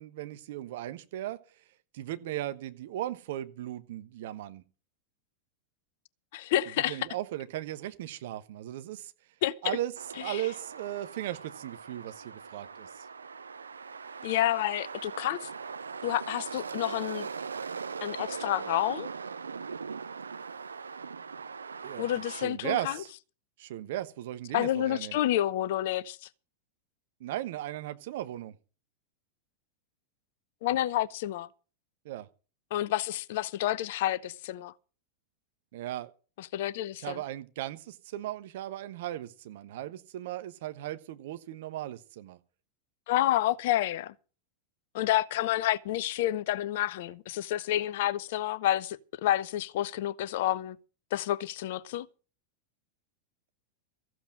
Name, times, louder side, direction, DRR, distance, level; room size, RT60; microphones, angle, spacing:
voice 1, 0.0-1.4 1.9-4.6 6.9-9.1 9.6-9.9 10.2-13.1 21.8-23.1 23.6-25.2 27.2-28.6 32.0-32.3 35.7-36.1 37.0-42.4, right 13 dB, 55° right, 1.1 m, -37 dB
voice 2, 6.3-7.0 9.4-9.8 10.3-10.4 14.2-15.5 16.0-17.3 18.0-19.1 22.0-22.9 24.5-26.2 30.6-31.5 32.7-34.7 36.4-37.2 43.1-44.1 44.9-50.8 51.1-52.1, left 13 dB, 55° left, 0.8 m, -29 dB
sound 1, 10.0-22.5, right 5 dB, 75° right, 0.6 m, -40 dB
14.5 x 7.8 x 7.7 m
figure-of-eight pair, 90°, 0 cm